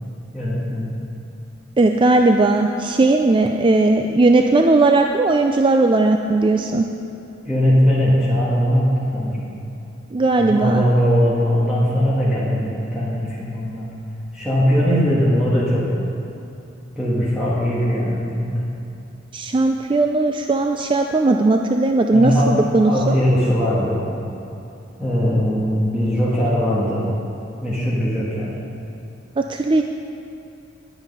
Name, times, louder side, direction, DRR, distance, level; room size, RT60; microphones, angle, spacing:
voice 1, 0.3-0.9 7.4-9.5 10.4-13.9 14.3-16.1 16.9-18.7 22.1-22.6 22.9-24.0 25.0-27.1 27.6-28.5, equal, 5° right, -10 dB, 1.7 m, -20 dB
voice 2, 1.8-6.8 10.1-10.8 19.3-23.2 29.4-29.8, right 2 dB, 25° right, 4 dB, 0.4 m, -17 dB
11.0 x 9.8 x 5.4 m, 2.7 s
head